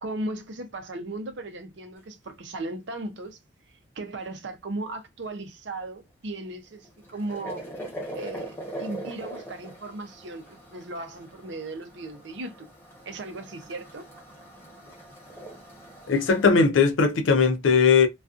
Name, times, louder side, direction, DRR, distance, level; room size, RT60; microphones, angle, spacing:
voice 1, 0.0-3.4 4.0-7.6 8.1-12.7 13.1-14.1, right 2 dB, 70° right, 0.6 m, -36 dB
sound 1, 6.6-16.4, right 1 dB, 10° left, 0.8 m, -41 dB
voice 2, 16.1-18.1, left 5 dB, 85° left, 0.5 m, -19 dB
2.4 x 2.3 x 2.4 m
head